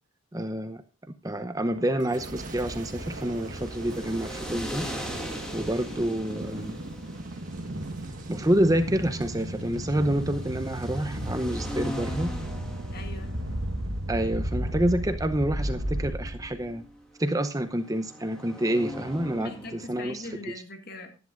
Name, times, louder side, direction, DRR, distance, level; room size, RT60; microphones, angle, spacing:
voice 1, 0.3-0.8 1.2-4.9 5.5-6.8 8.3-12.3 14.1-16.8 17.2-20.2, right 1 dB, 15° right, 10 dB, 0.8 m, -28 dB
sound 1, 1.7-16.7, right 1 dB, 75° right, 1.5 m, -35 dB
Boom, 2.0-11.3 11.9-12.3, right 1 dB, 40° right, 1.4 m, -44 dB
sound 2, 2.6-20.5, equal, 5° left, 2.3 m, -41 dB
voice 2, 12.9-13.4 19.4-21.2, left 3 dB, 50° left, 6 dB, 2.1 m, -41 dB
15.0 x 11.0 x 2.5 m, 0.30 s
head